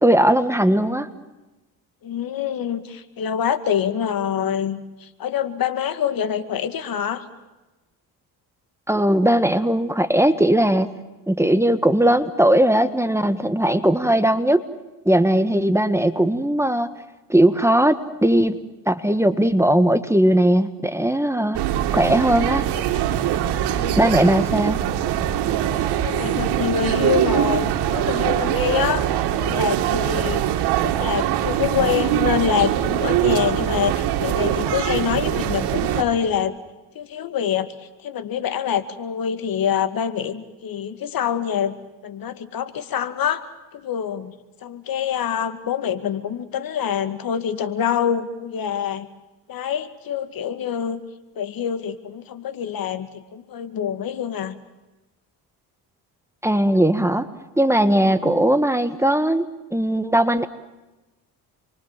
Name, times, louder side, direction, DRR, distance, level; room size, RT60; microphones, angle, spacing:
voice 1, 0.0-1.1 8.9-10.9 11.3-14.6 15.0-16.9 17.3-18.6 18.8-21.6 21.9-22.6 24.0-24.8 56.4-57.3 57.6-59.4 59.7-60.5, right 1 dB, 5° right, 10 dB, 1.6 m, -18 dB
voice 2, 2.0-7.3 23.5-24.0 26.0-29.1 29.4-30.4 30.8-36.5 37.0-37.7 38.0-41.8 42.0-43.4 43.7-44.3 44.6-49.1 49.5-51.0 51.4-54.6 58.0-58.1, left 8 dB, 60° left, 10 dB, 2.2 m, -25 dB
sound 1, 21.5-36.0, right 11 dB, 85° right, 2.6 m, -22 dB
29.0 x 23.5 x 7.5 m, 1.1 s
cardioid pair, 95°, 39 cm